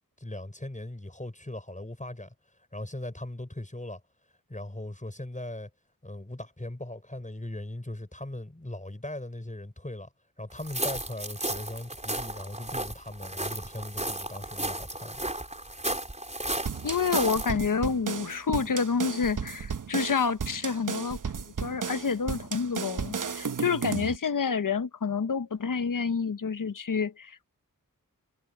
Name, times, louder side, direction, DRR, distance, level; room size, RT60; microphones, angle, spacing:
voice 1, 0.2-4.0 4.5-5.7 6.0-10.1 10.4-15.2, left 1 dB, 20° left, 5.5 m, -39 dB
sound 1, 10.6-17.5, right 1 dB, 20° right, 4.2 m, -34 dB
sound 2, 16.7-24.2, right 6 dB, 65° right, 1.0 m, -34 dB
voice 2, 16.8-21.2 21.6-27.5, left 5 dB, 65° left, 1.1 m, -28 dB
cardioid pair, 40°, 34 cm